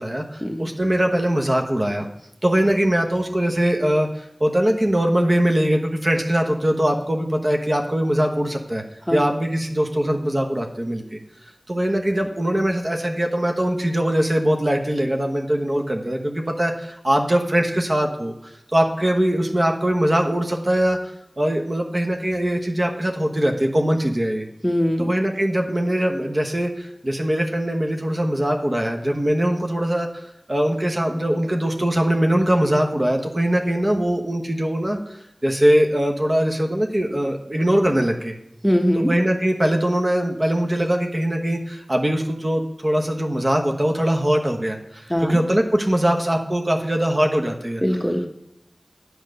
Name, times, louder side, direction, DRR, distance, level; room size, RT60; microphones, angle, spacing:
voice 1, 0.0-2.1 2.4-8.8 9.1-11.2 11.7-21.0 21.4-24.5 25.0-35.1 35.4-38.3 38.9-47.8, right 1 dB, 45° right, 2 dB, 1.0 m, -21 dB
voice 2, 24.6-25.1 38.6-39.1 45.1-45.4 47.8-48.3, equal, ahead, 4 dB, 1.0 m, -21 dB
9.1 x 4.7 x 6.5 m, 0.79 s
wide cardioid pair, 45°, 0 cm